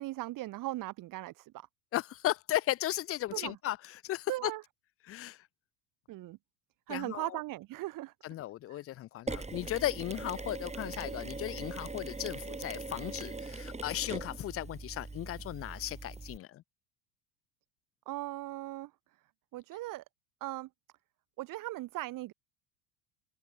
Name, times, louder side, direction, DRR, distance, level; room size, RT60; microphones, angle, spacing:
voice 1, 0.0-1.7 3.3-3.5 4.3-4.6 6.1-6.4 6.9-8.1 8.7-8.8 18.1-18.9 19.5-20.0 20.4-20.7 21.4-22.3, right 17 dB, 40° right, 1.1 m, -38 dB
voice 2, 1.9-4.5 5.0-5.4 6.9-7.3 8.2-16.6, left 14 dB, 30° left, 0.6 m, -36 dB
Mechanisms, 9.3-16.4, right 3 dB, 15° right, 6.2 m, -41 dB
open air
hypercardioid pair, 80°, 50 cm